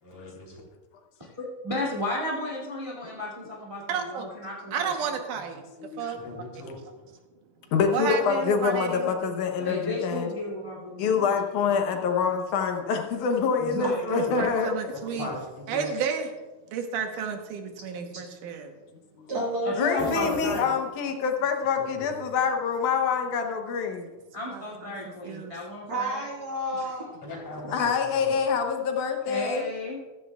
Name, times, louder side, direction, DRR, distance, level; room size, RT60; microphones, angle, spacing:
voice 1, 0.0-0.5 6.2-7.1 14.2-14.3 14.9-15.9 21.8-22.1 27.2-28.4, left 1 dB, 45° left, -3 dB, 4.3 m, -39 dB
voice 2, 1.4-4.7 5.0-5.1 9.6-11.2 11.7-12.0 13.6-14.4 19.6-20.7 24.3-26.2 26.8-26.9 29.3-30.0, left 2 dB, 10° right, -4 dB, 1.7 m, -34 dB
voice 3, 3.9-4.2 4.7-5.6 6.0-6.2 7.9-9.1 14.1-15.3 15.7-16.3 16.7-18.7 24.5-25.6, right 6 dB, 85° right, 5 dB, 2.6 m, -31 dB
voice 4, 7.7-10.3 11.0-14.9 19.2-19.3 19.8-24.1 27.7-29.7, left 6 dB, 75° left, 4 dB, 2.3 m, -26 dB
voice 5, 19.3-20.3 25.9-27.1, equal, 50° right, -3 dB, 2.4 m, -30 dB
sound 1, 20.0-21.2, right 1 dB, 15° left, 1.5 m, -34 dB
15.0 x 13.5 x 2.3 m, 1.2 s
omnidirectional pair, 3.7 m